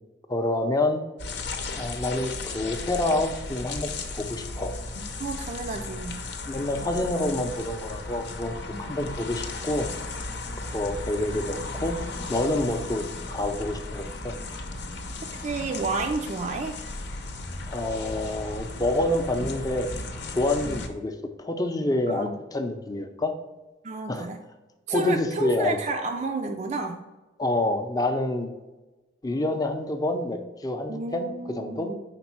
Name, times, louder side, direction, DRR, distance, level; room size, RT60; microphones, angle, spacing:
voice 1, 0.3-1.0 1.8-4.8 6.5-9.9 10.6-12.0 12.3-14.4 17.7-19.9 20.3-23.3 24.1-24.3 24.9-25.8 27.4-28.5 29.2-31.9, left 1 dB, 20° left, 6 dB, 0.6 m, -27 dB
sound 1, 1.2-20.9, left 3 dB, 65° left, 0.8 m, -35 dB
voice 2, 5.2-6.2 8.7-9.0 15.4-16.7 20.6-20.8 22.1-22.4 23.8-24.4 24.9-27.0 30.9-32.0, right 3 dB, 40° right, 3 dB, 0.4 m, -31 dB
5.2 x 3.9 x 5.9 m, 1.1 s
head